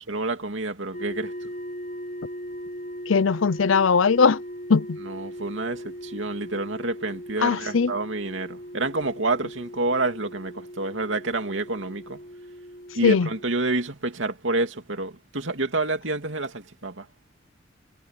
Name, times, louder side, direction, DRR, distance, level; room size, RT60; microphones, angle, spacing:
voice 1, 0.1-1.5 5.0-12.2 12.9-17.1, right 2 dB, 70° right, 2.6 m, -28 dB
sound 1, 0.9-13.4, equal, 40° left, 6.0 m, -39 dB
voice 2, 3.1-4.4 4.7-5.0 7.4-7.9 13.0-13.3, left 5 dB, 80° left, 0.6 m, -19 dB
head